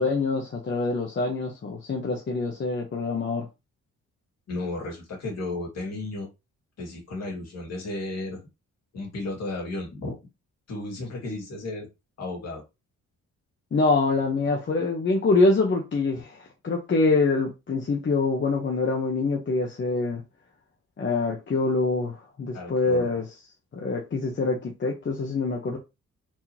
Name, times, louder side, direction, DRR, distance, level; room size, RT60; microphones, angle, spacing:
voice 1, 0.0-3.5 13.7-20.2 21.0-23.2 23.7-25.8, left 3 dB, 40° left, 1.2 m, -25 dB
voice 2, 4.5-6.3 6.8-8.4 8.9-10.3 10.7-11.9 12.2-12.6 22.5-23.2, left 2 dB, 60° left, 2.5 m, -34 dB
4.6 x 3.8 x 3.0 m
cardioid pair, 115°, 30 cm